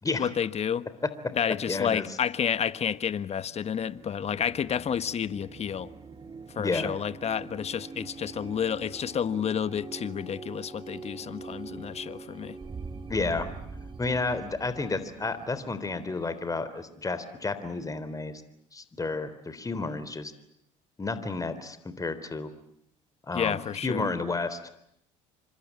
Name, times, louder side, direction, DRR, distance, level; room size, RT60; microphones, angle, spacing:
voice 1, 0.2-0.9 1.4-5.9 6.5-12.6 23.3-24.1, left 8 dB, 40° left, 1.4 m, -30 dB
voice 2, 1.7-2.1 6.6-7.0 13.1-13.5 14.0-18.4 18.7-20.3 21.0-22.5 23.2-24.7, left 3 dB, 20° left, 3.7 m, -31 dB
sound 1, 3.4-16.8, right 4 dB, 30° right, 2.7 m, -44 dB
27.5 x 25.5 x 8.5 m
hypercardioid pair, 70°, 17 cm